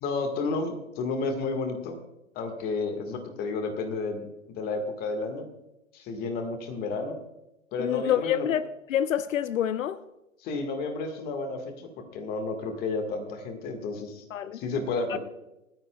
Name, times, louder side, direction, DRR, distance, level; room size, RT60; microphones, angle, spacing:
voice 1, 0.0-2.0 2.3-5.5 5.9-7.2 7.7-8.5 10.4-14.2 14.5-15.2, left 3 dB, 25° left, 1.6 m, -31 dB
voice 2, 7.8-10.0 14.3-14.6 15.1-15.2, left 10 dB, 75° left, 0.7 m, -27 dB
28.0 x 9.7 x 2.3 m
hypercardioid pair, 140°, 40 cm